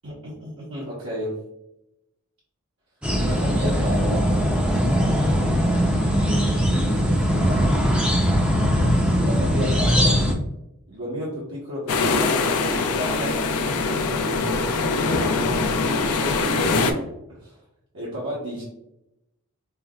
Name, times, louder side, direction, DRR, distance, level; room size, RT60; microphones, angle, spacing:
voice 1, 0.0-1.4 3.2-4.3 6.2-8.0 8.6-10.2 10.9-13.4 13.9-14.9 15.3-15.8 16.2-16.8 17.3-17.6 17.9-18.6, equal, 65° right, -7 dB, 0.9 m, -33 dB
sound 1, 3.0-10.3, equal, 5° right, 0.4 m, -20 dB
sound 2, 11.9-16.9, left 3 dB, 85° left, 0.5 m, -23 dB
5.3 x 2.1 x 2.3 m, 0.85 s
head